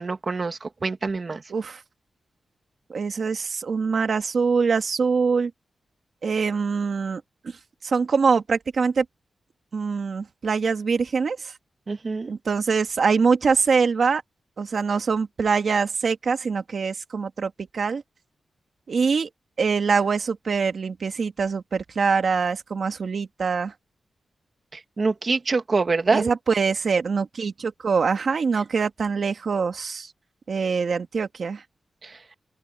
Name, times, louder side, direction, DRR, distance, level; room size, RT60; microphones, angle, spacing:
voice 1, 0.0-1.4 11.9-12.3 24.7-26.3 32.0-32.2, right 4 dB, 35° right, 2.0 m, -25 dB
voice 2, 1.5-1.8 2.9-5.5 6.2-7.6 7.8-9.1 9.7-11.5 12.3-14.2 14.6-18.0 18.9-19.3 19.6-23.7 26.1-30.1 30.5-31.6, right 5 dB, 50° right, 2.0 m, -24 dB
open air
wide cardioid pair, 175°, 0 cm